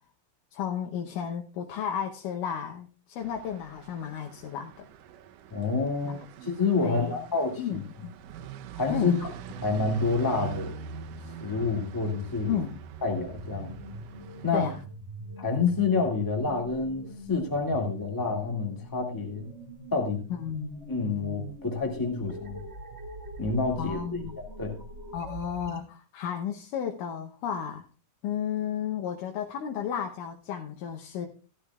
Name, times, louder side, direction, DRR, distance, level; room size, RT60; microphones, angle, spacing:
voice 1, 0.5-4.9 6.0-6.2 6.8-7.2 7.6-7.8 8.9-9.2 12.5-12.8 14.5-14.8 20.3-20.8 23.8-24.4 25.1-27.9 28.2-31.3, left 8 dB, 70° left, 2 dB, 2.3 m, -33 dB
sound 1, 3.2-14.9, right 7 dB, 75° right, 2.1 m, -44 dB
voice 2, 5.5-7.8 8.7-9.3 9.6-10.7 11.4-12.6 13.0-13.7 14.4-14.7 15.4-19.4 19.9-20.2 20.9-22.6 23.4-24.8, left 4 dB, 15° left, 1 dB, 0.8 m, -28 dB
sound 2, 12.1-25.8, right 3 dB, 20° right, 1.8 m, -43 dB
15.0 x 11.5 x 2.4 m, 0.35 s
omnidirectional pair, 4.2 m